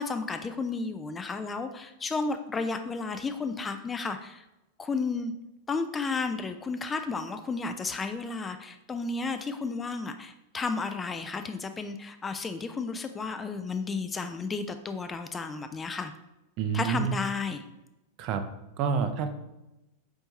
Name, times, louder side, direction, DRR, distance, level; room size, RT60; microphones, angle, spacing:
voice 1, 0.0-4.4 4.8-5.3 5.7-16.1 16.7-17.6, left 4 dB, 15° left, 8 dB, 0.3 m, -32 dB
voice 2, 16.6-17.1 18.2-18.4 18.8-19.3, right 6 dB, 40° right, 8 dB, 0.5 m, -28 dB
4.4 x 4.3 x 2.8 m, 0.94 s
figure-of-eight pair, 90°, 0 cm